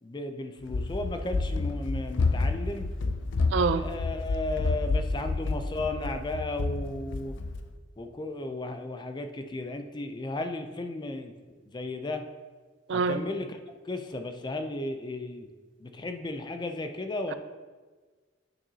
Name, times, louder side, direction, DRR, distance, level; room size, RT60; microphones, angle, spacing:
voice 1, 0.0-2.9 3.8-7.4 8.0-12.2 12.9-13.6 13.9-15.5 15.8-17.3, left 2 dB, 25° left, 6 dB, 0.4 m, -35 dB
Run, 0.6-7.7, left 3 dB, 90° left, 0.4 m, -29 dB
voice 2, 3.5-3.8 12.9-13.2, right 4 dB, 80° right, 12 dB, 0.4 m, -25 dB
9.1 x 5.8 x 2.7 m, 1.4 s
head